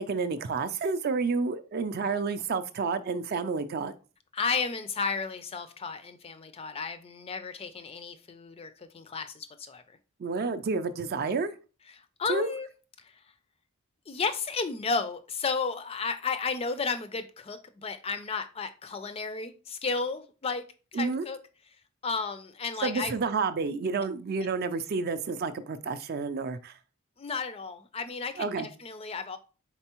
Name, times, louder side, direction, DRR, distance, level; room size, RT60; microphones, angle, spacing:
voice 1, 0.0-3.9 10.2-11.5 12.3-12.5 20.9-21.3 22.8-26.8 28.4-28.7, right 4 dB, 45° right, 11 dB, 0.4 m, -30 dB
voice 2, 4.3-10.0 11.9-12.7 13.0-13.2 14.1-20.6 20.9-21.4 22.0-23.1 27.2-29.4, left 4 dB, 25° left, 10 dB, 0.3 m, -33 dB
4.4 x 4.0 x 2.9 m, 0.35 s
head